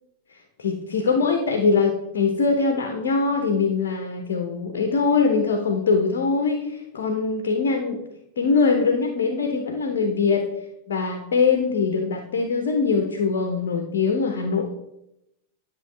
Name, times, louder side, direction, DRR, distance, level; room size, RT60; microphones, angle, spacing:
voice 1, 0.6-8.0 8.4-10.5 10.9-14.7, left 4 dB, 60° left, 5 dB, 0.9 m, -22 dB
11.0 x 6.3 x 3.3 m, 0.87 s
figure-of-eight pair, 90°, 0 cm